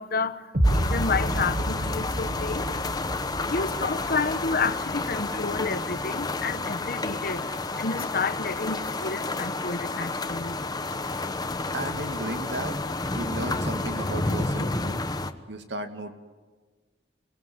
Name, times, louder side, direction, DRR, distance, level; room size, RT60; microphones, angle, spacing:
voice 1, 0.0-2.9 3.4-11.6, left 4 dB, 55° left, 1.1 m, -31 dB
sound 1, 0.5-6.6, right 1 dB, 50° right, 2.7 m, -30 dB
sound 2, 0.6-15.3, left 2 dB, 25° left, 1.1 m, -30 dB
voice 2, 11.7-12.8 13.1-16.1, right 1 dB, 85° right, 2.3 m, -35 dB
25.0 x 21.0 x 9.6 m
head